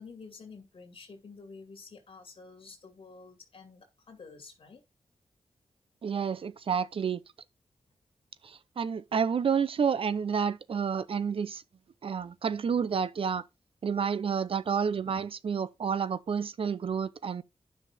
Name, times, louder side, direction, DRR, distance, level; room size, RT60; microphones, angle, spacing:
voice 1, 0.0-4.8, left 4 dB, 55° left, 2.3 m, -49 dB
voice 2, 6.0-7.2 8.4-11.6 12.0-13.4 13.8-17.4, right 6 dB, 60° right, 0.6 m, -30 dB
10.0 x 6.0 x 3.5 m
wide cardioid pair, 95°, 11 cm